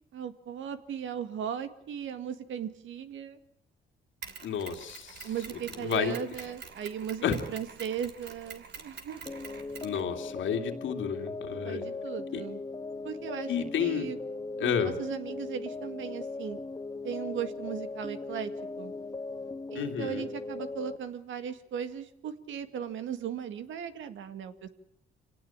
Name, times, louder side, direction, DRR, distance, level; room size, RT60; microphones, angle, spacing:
voice 1, 0.1-3.4 5.2-9.2 11.5-12.6 13.0-13.5 13.8-14.2 14.6-16.6 17.0-18.5 18.8-18.9 19.7-24.7, right 8 dB, 75° right, 10 dB, 2.0 m, -37 dB
Mechanisms, 4.2-10.5, right 6 dB, 60° right, 3.0 m, -46 dB
voice 2, 4.4-5.3 5.8-6.2 7.2-7.4 9.8-11.8 12.3-12.4 13.5-14.1 14.6-14.9 19.7-20.2, left 8 dB, 75° left, 5 dB, 2.8 m, -31 dB
sound 1, 9.3-21.0, left 3 dB, 20° left, 1.4 m, -39 dB
26.0 x 18.0 x 8.8 m, 0.74 s
cardioid pair, 90°, 20 cm